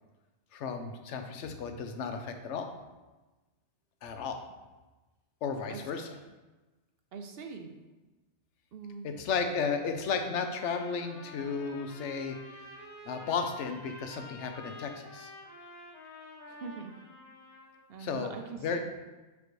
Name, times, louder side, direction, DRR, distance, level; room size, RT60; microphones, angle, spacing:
voice 1, 0.5-2.7 4.0-4.4 5.4-6.1 9.0-12.4 13.1-15.3 18.0-18.8, left 5 dB, 80° left, 6 dB, 1.0 m, -34 dB
voice 2, 7.1-7.7 8.7-9.1 16.5-16.9 17.9-18.8, right 5 dB, 65° right, 5 dB, 0.8 m, -42 dB
Trumpet, 10.4-17.8, left 1 dB, 40° left, 1.1 m, -49 dB
6.4 x 5.1 x 3.1 m, 1.2 s
omnidirectional pair, 1.2 m